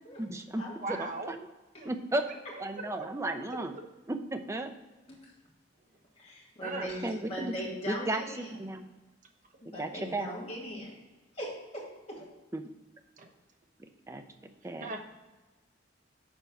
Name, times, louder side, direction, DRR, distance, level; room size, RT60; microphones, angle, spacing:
voice 1, 0.2-0.6 0.9-1.4 1.8-2.2 2.6-3.7 4.1-4.7 7.0-7.5 7.9-8.9 9.8-10.3 12.5-12.6 14.1-14.2 14.6-14.9, right 1 dB, 15° right, 7 dB, 0.5 m, -34 dB
voice 2, 0.8-1.3 1.8-1.9 6.6-6.9 13.2-13.3 14.8-15.1, right 3 dB, 40° right, 3 dB, 0.9 m, -37 dB
voice 3, 6.2-8.7 9.6-10.9 11.3-12.2, equal, 35° left, -5 dB, 2.6 m, -40 dB
7.0 x 4.5 x 5.9 m, 1.2 s
head